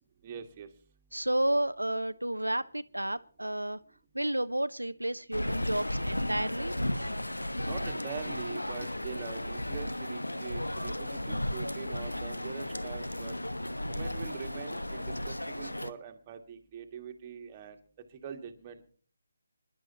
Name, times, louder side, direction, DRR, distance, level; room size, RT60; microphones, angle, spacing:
voice 1, 0.2-0.7 7.7-13.3 13.9-17.8 18.2-18.9, right 7 dB, 25° right, 1.7 m, -43 dB
voice 2, 1.1-3.8 4.1-6.8, right 1 dB, 85° right, 0.6 m, -31 dB
sound 1, 5.3-15.9, left 1 dB, 85° left, 1.1 m, -34 dB
26.5 x 11.5 x 2.9 m
figure-of-eight pair, 150°, 0 cm